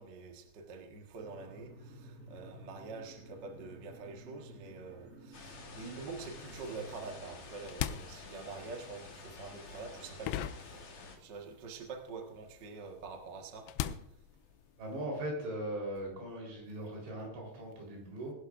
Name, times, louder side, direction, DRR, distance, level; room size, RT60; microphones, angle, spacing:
voice 1, 0.0-10.8 11.2-13.7, right 4 dB, 70° right, 2 dB, 1.0 m, -46 dB
sound 1, 1.2-7.7, equal, 30° right, 1.9 m, -53 dB
sound 2, 5.3-11.2, left 4 dB, 50° left, 1.8 m, -50 dB
sound 3, 7.4-11.5 11.7-15.0, left 11 dB, 90° left, 2.8 m, -41 dB
voice 2, 14.8-18.3, right 1 dB, 90° right, -1 dB, 6.5 m, -39 dB
21.5 x 11.5 x 2.6 m, 0.77 s
omnidirectional pair, 4.8 m